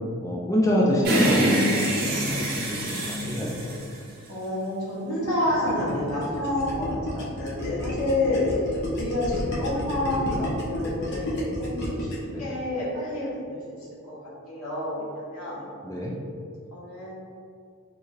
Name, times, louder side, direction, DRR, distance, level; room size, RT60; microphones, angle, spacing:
voice 1, 0.2-2.8 3.2-3.7 12.3-12.5 15.8-16.1, equal, 15° left, -4 dB, 0.4 m, -25 dB
sound 1, 1.0-4.5, right 1 dB, 45° right, 0.7 m, -25 dB
voice 2, 4.3-8.5 8.9-15.6 16.7-17.3, left 1 dB, 85° left, -7 dB, 1.2 m, -29 dB
Gurgling, 5.2-12.3, left 1 dB, 55° left, 0.8 m, -31 dB
3.7 x 2.6 x 3.0 m, 2.3 s
head